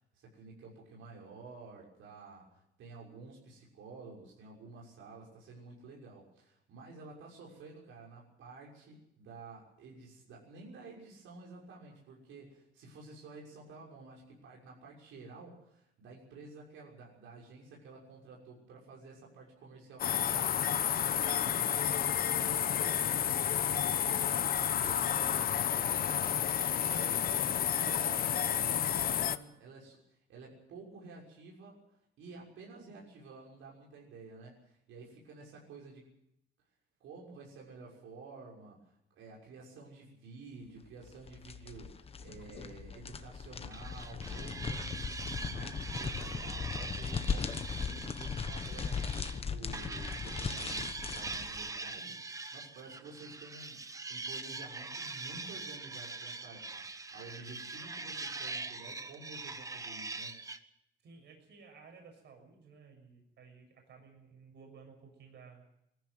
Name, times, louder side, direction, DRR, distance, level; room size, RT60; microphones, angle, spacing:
voice 1, 0.0-20.6 21.3-31.8 32.2-36.1 37.0-60.4, right 3 dB, 85° right, -2 dB, 6.4 m, -51 dB
sound 1, 20.0-29.4, left 9 dB, 50° left, 0.9 m, -30 dB
voice 2, 26.8-27.2 61.0-65.6, right 5 dB, 60° right, 2 dB, 6.7 m, -55 dB
sound 2, 41.0-51.7, left 6 dB, 30° left, 1.2 m, -38 dB
sound 3, 43.7-49.4 49.7-60.6, right 3 dB, 15° right, 1.0 m, -42 dB
21.0 x 14.5 x 9.4 m, 0.79 s
cardioid pair, 145°, 20 cm